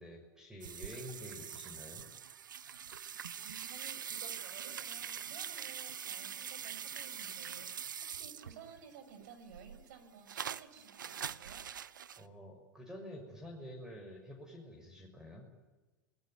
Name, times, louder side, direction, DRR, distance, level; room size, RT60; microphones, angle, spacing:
voice 1, 0.0-2.0 12.2-15.5, equal, 5° right, 3 dB, 6.5 m, -49 dB
sound 1, 0.6-8.8 9.2-12.2, right 8 dB, 85° right, 1.0 m, -44 dB
voice 2, 3.4-11.7, right 6 dB, 65° right, 9 dB, 6.6 m, -55 dB
28.0 x 20.0 x 9.5 m, 1.2 s
hypercardioid pair, 95°, 10 cm